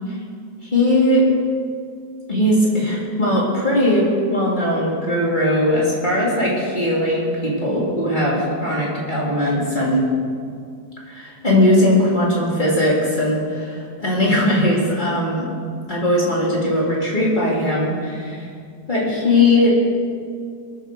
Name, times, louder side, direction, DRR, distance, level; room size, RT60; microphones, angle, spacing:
voice 1, 0.6-1.3 2.3-10.1 11.0-15.5 15.9-18.5 18.9-19.8, left 1 dB, 30° left, -6 dB, 3.7 m, -19 dB
22.5 x 7.8 x 6.5 m, 2.2 s
omnidirectional pair, 1.6 m